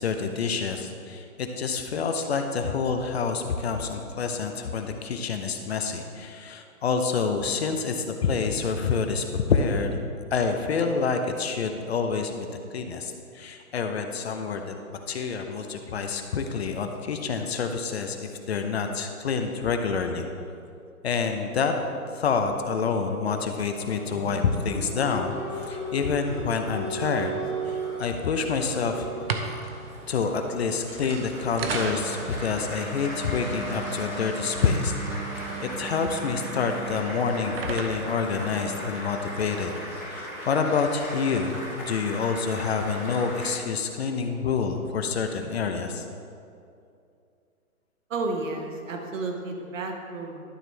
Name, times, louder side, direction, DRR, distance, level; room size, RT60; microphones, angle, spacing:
voice 1, 0.0-9.9 10.3-12.5 12.7-14.7 15.1-20.3 21.0-21.8 22.1-27.4 27.7-29.1 30.1-34.9 35.6-39.7 40.0-46.0, left 5 dB, 45° left, 5 dB, 0.7 m, -27 dB
Applause, 23.5-43.5, right 1 dB, ahead, 0.4 m, -37 dB
sound 1, 29.1-39.4, right 4 dB, 45° right, 0.8 m, -37 dB
voice 2, 48.1-50.4, right 3 dB, 60° right, 2 dB, 1.5 m, -32 dB
12.5 x 6.0 x 3.3 m, 2.5 s
hypercardioid pair, 145°, 44 cm